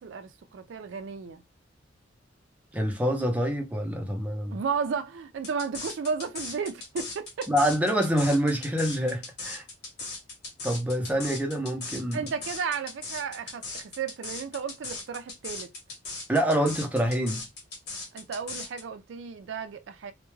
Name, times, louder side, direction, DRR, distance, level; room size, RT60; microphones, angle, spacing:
voice 1, 0.0-1.4 4.5-7.5 12.1-15.7 18.1-20.1, right 6 dB, 75° right, 0.4 m, -33 dB
voice 2, 2.7-4.6 7.5-9.6 10.6-12.2 16.3-17.4, equal, 10° right, 0.5 m, -26 dB
sound 1, 5.4-18.8, left 3 dB, 60° left, 1.1 m, -38 dB
2.2 x 2.1 x 3.0 m
head